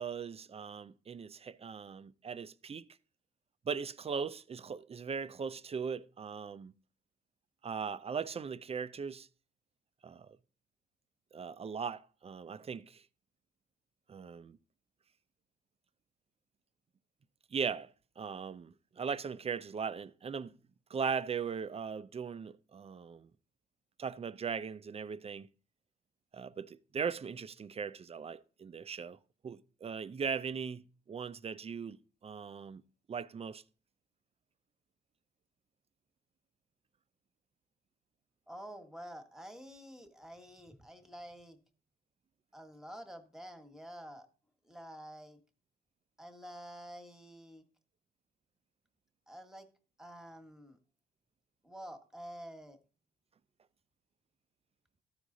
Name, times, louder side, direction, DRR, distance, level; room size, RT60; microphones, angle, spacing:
voice 1, 0.0-2.9 3.7-6.7 7.6-9.3 10.0-10.4 11.3-13.0 14.1-14.6 17.5-17.9 18.2-20.5 20.9-23.3 24.0-25.5 26.3-29.2 29.4-32.8 33.1-33.6, right 6 dB, 30° right, 0.5 m, -39 dB
voice 2, 38.5-41.6 42.5-44.3 44.6-45.4 46.2-47.6 49.3-49.7 50.0-50.8 51.6-52.8, equal, 5° right, 1.4 m, -49 dB
13.5 x 4.8 x 3.9 m
cardioid pair, 90°, 20 cm